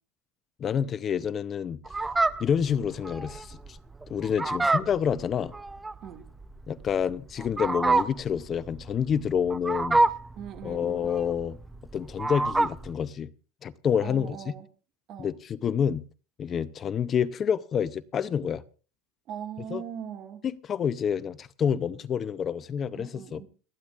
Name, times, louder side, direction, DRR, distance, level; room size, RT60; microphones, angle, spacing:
voice 1, 0.6-1.8 2.4-3.8 4.1-5.5 6.7-10.0 10.6-11.6 11.9-13.3 13.6-14.5 15.2-16.0 16.4-18.6 19.7-19.8 20.4-23.4, left 8 dB, 30° left, 0.6 m, -28 dB
Fowl, 1.9-12.9, right 3 dB, 10° right, 0.7 m, -28 dB
voice 2, 10.4-11.1 14.0-14.7 15.1-15.4 19.3-20.4 23.0-23.5, right 9 dB, 45° right, 2.1 m, -40 dB
30.0 x 10.0 x 2.5 m
supercardioid pair, 140°, 0 cm